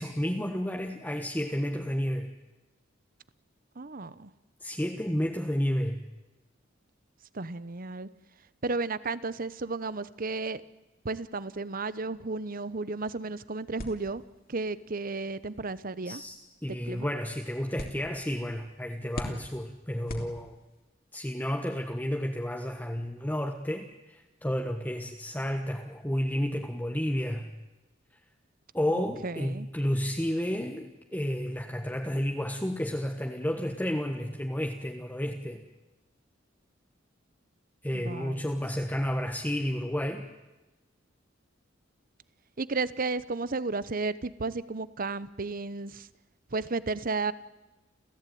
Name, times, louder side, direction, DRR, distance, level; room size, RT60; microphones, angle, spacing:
voice 1, 0.0-2.3 4.6-6.0 16.0-16.3 16.6-20.6 21.1-27.5 28.7-35.6 37.8-40.2, equal, 10° left, 2 dB, 1.4 m, -31 dB
voice 2, 3.8-4.3 7.3-8.1 8.6-10.6 11.0-14.2 14.5-16.2 16.7-17.1 28.9-29.7 37.9-38.6 42.6-46.1 46.5-47.3, right 3 dB, 45° right, 17 dB, 0.9 m, -33 dB
sound 1, 13.8-20.9, left 1 dB, 50° left, 3.2 m, -45 dB
30.0 x 15.0 x 9.4 m, 1.0 s
head